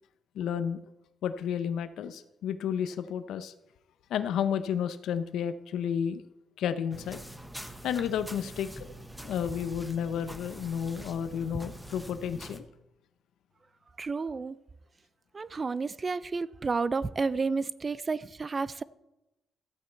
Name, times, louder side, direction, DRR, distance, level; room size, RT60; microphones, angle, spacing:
voice 1, 0.3-0.8 1.2-3.5 4.1-6.3 6.6-7.2 7.8-8.7 9.2-12.7, left 8 dB, 80° left, 0.6 m, -31 dB
sound 1, 6.9-12.6, right 1 dB, ahead, 0.9 m, -44 dB
voice 2, 14.0-14.6 15.3-18.8, right 4 dB, 30° right, 0.4 m, -31 dB
13.5 x 8.7 x 4.4 m
cardioid pair, 120°, 0 cm